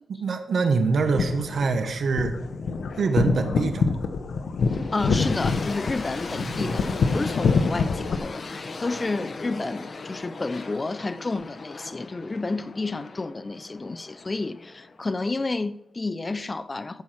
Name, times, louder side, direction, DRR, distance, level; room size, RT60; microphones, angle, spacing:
voice 1, 0.1-2.3 3.0-3.8 6.5-6.7, right 4 dB, 65° right, 1.3 m, -24 dB
sound 1, 0.9-8.1, left 4 dB, 70° left, 0.9 m, -26 dB
sound 2, 4.6-15.5, left 3 dB, 45° left, 1.0 m, -38 dB
voice 2, 4.9-17.0, left 3 dB, 25° left, 0.5 m, -30 dB
13.0 x 7.2 x 4.7 m
wide cardioid pair, 110°, 0 cm